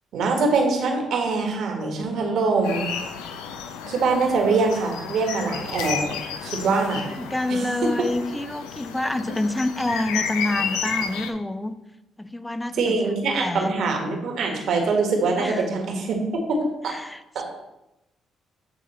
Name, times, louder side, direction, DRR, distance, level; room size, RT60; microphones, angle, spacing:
voice 1, 0.1-2.9 3.9-6.1 6.4-7.1 7.5-7.6 7.9-8.0 9.3-9.4 12.7-16.2 16.5-16.6 16.8-16.9 17.3-17.4, right 4 dB, 65° right, 2 dB, 1.4 m, -23 dB
sound 1, 2.6-11.3, left 6 dB, 80° left, 0.5 m, -32 dB
voice 2, 7.2-11.7 12.2-13.0 13.3-13.8 15.4-15.7 16.9-17.2, left 1 dB, 10° left, 12 dB, 0.6 m, -27 dB
8.2 x 3.5 x 4.2 m, 0.93 s
hypercardioid pair, 50°, 0 cm